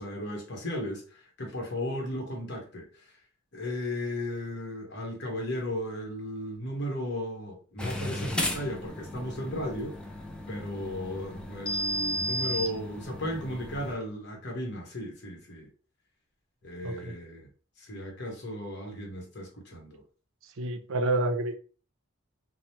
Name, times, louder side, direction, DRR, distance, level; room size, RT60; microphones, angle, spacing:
voice 1, 0.0-3.1 3.5-10.0 10.5-15.7 16.6-17.5 17.8-20.0, left 1 dB, 60° left, 1.0 m, -35 dB
sound 1, 7.8-13.9, equal, 5° left, 0.3 m, -34 dB
voice 2, 16.8-17.2 20.6-21.5, right 2 dB, 70° right, 0.5 m, -28 dB
2.9 x 2.0 x 2.9 m
head